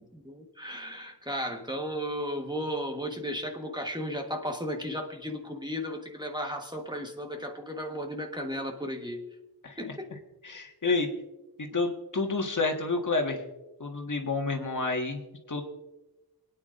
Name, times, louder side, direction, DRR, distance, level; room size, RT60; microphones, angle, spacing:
voice 1, 0.0-9.2 9.8-10.1 10.8-10.9, equal, 10° right, 2 dB, 1.4 m, -35 dB
voice 2, 10.4-11.1 11.7-13.4 13.8-15.2 15.5-15.6, left 3 dB, 50° left, 2 dB, 1.7 m, -29 dB
26.5 x 9.6 x 2.6 m, 1.0 s
wide cardioid pair, 90°, 39 cm